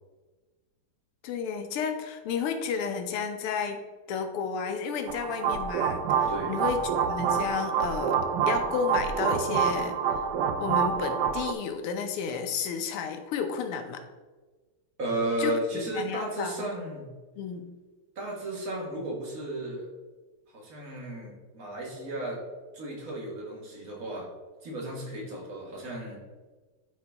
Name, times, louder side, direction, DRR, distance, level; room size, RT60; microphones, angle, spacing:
voice 1, 1.2-3.8 4.1-6.8 7.1-8.2 8.5-10.0 10.6-14.0 15.4-16.9 17.4-17.7, left 6 dB, 80° left, 6 dB, 1.7 m, -32 dB
sound 1, 5.1-11.5, right 7 dB, 90° right, 0.9 m, -27 dB
voice 2, 6.3-6.8 15.0-17.1 18.2-19.9 20.5-22.4 22.7-24.3 24.6-26.2, right 1 dB, 40° right, -2 dB, 1.8 m, -34 dB
11.5 x 3.9 x 3.4 m, 1.3 s
omnidirectional pair, 2.4 m